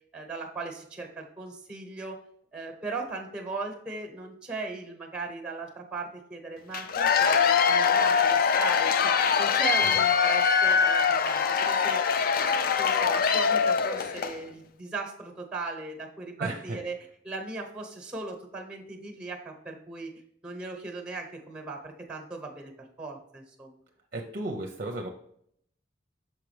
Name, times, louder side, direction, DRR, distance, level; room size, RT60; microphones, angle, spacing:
voice 1, 0.1-2.2 2.5-12.0 12.4-16.9 17.2-20.1 20.4-22.7 23.0-23.8, right 3 dB, 5° right, 2 dB, 1.1 m, -38 dB
Cheering / Applause / Crowd, 6.7-14.4, left 6 dB, 50° left, 0.4 m, -23 dB
voice 2, 16.4-16.8 24.1-25.1, right 2 dB, 45° right, 3 dB, 0.6 m, -34 dB
6.4 x 4.9 x 3.3 m, 0.69 s
head